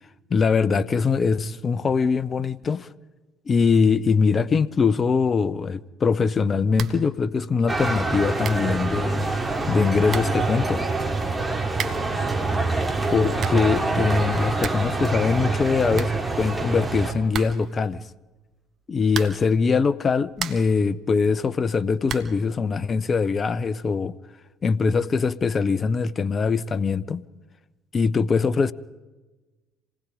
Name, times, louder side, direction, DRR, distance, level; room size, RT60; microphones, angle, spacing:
voice 1, 0.3-2.9 3.5-9.3 9.7-10.8 13.1-18.0 18.9-24.2 24.6-27.2 27.9-28.7, left 5 dB, 35° left, 0.8 m, -22 dB
sound 1, 6.7-7.1 7.4-7.5 8.1-8.2 8.4-8.7 9.7-9.8 10.1-10.4 11.7-12.2 13.1-13.7 14.1-14.2 14.4-15.0 15.2-15.3 15.6-15.7 15.9-16.7 17.3-17.8 19.1-19.6 20.0-20.8 22.0-22.4, right 8 dB, 50° right, 1.6 m, -34 dB
sound 2, 7.7-17.1, right 3 dB, 15° right, 3.7 m, -25 dB
27.0 x 19.5 x 5.0 m
hypercardioid pair, 60°, 0 cm